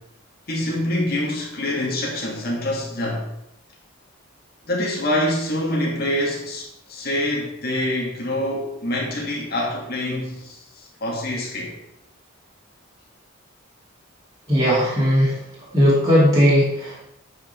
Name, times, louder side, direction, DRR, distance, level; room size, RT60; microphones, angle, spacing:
voice 1, 0.5-3.2 4.7-10.6 11.0-11.7, left 1 dB, 45° left, -3 dB, 2.6 m, -25 dB
voice 2, 14.5-15.4 15.7-17.0, equal, 20° right, -8 dB, 2.7 m, -17 dB
9.0 x 5.9 x 4.7 m, 0.79 s
head